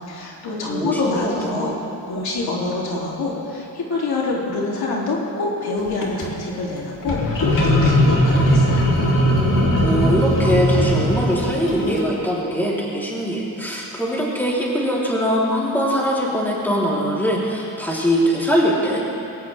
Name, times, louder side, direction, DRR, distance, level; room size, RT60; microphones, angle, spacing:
voice 1, 0.1-1.7 2.0-8.9, left 3 dB, 70° left, -4 dB, 3.2 m, -26 dB
voice 2, 0.7-1.7 9.8-19.2, equal, 5° left, -6 dB, 3.7 m, -22 dB
sound 1, 5.9-6.3 7.0-12.0, equal, 55° left, 3.3 m, -18 dB
21.5 x 17.5 x 3.6 m, 2.8 s
cardioid pair, 115°, 39 cm